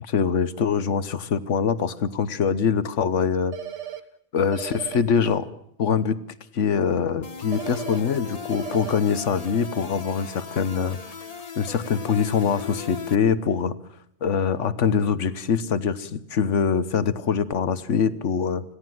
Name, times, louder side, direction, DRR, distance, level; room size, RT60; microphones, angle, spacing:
voice 1, 0.1-3.6 4.3-5.5 5.8-6.2 6.5-11.0 11.6-13.7 14.2-18.6, left 6 dB, 75° left, 15 dB, 1.4 m, -23 dB
sound 1, 3.5-4.0 4.5-5.0 7.5-8.0 8.5-9.0, right 11 dB, 70° right, 1.4 m, -35 dB
sound 2, 7.2-13.1, left 6 dB, 30° left, 1.3 m, -37 dB
26.5 x 17.0 x 7.7 m, 0.73 s
omnidirectional pair, 1.3 m